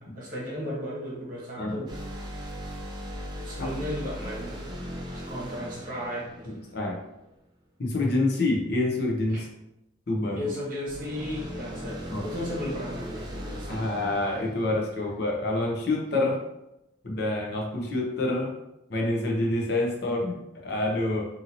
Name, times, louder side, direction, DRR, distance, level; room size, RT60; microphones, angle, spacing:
voice 1, 0.0-1.9 3.3-4.6 5.1-6.5 9.3-9.4 10.3-13.8, left 1 dB, 45° right, -5 dB, 1.0 m, -35 dB
sound 1, 1.9-7.3 10.8-15.6, equal, 20° right, 0.4 m, -39 dB
voice 2, 6.5-7.0 7.8-9.5 10.1-10.4 11.8-12.2 13.7-16.4 17.0-18.5 18.9-21.3, left 2 dB, 55° left, -1 dB, 0.6 m, -27 dB
2.7 x 2.7 x 2.7 m, 0.88 s
head